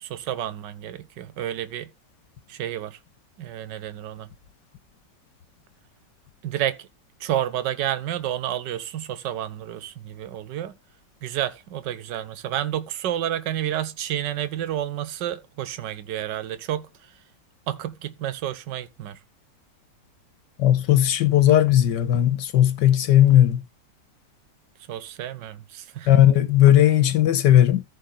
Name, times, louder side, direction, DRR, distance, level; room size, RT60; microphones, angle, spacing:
voice 1, 0.0-1.9 2.5-3.0 3.4-4.3 6.4-6.9 7.2-10.7 11.2-16.9 17.7-19.2 24.9-26.1, right 11 dB, 80° right, 1.5 m, -30 dB
voice 2, 20.6-23.6 26.1-27.8, left 12 dB, 75° left, 1.7 m, -17 dB
14.0 x 5.0 x 3.8 m
omnidirectional pair, 1.9 m